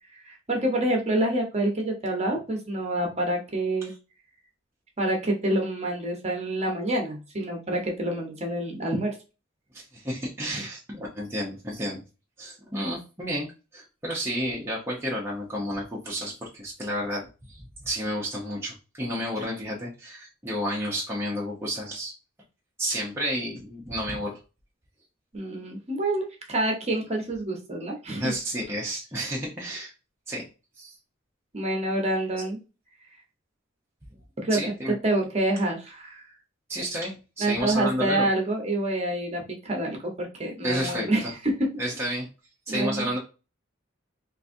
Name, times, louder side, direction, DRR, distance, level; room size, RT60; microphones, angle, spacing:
voice 1, 0.2-3.9 5.0-9.1 10.5-10.7 25.3-28.3 31.5-32.6 34.4-34.6 35.0-36.2 37.4-41.7 42.7-43.1, right 1 dB, 35° right, 1 dB, 1.1 m, -27 dB
voice 2, 9.7-12.0 12.4-22.1 22.8-24.4 28.2-29.9 30.3-30.5 30.8-30.9 34.5-34.9 36.7-38.3 40.6-41.1 41.8-42.3 42.7-43.2, equal, 15° right, -4 dB, 0.8 m, -31 dB
3.8 x 2.6 x 2.7 m, 0.31 s
head